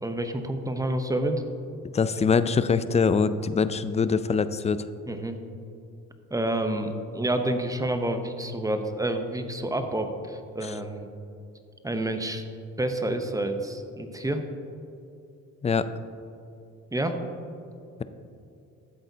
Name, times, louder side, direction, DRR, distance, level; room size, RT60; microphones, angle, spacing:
voice 1, 0.0-1.4 5.1-5.4 6.3-11.1 11.8-12.4 12.8-14.4 16.9-17.2, right 1 dB, 10° right, 7 dB, 0.8 m, -28 dB
voice 2, 1.9-4.9 10.6-10.8 15.6-15.9, left 5 dB, 20° left, 13 dB, 0.4 m, -23 dB
12.5 x 7.7 x 2.8 m, 2.6 s
cardioid pair, 85°, 32 cm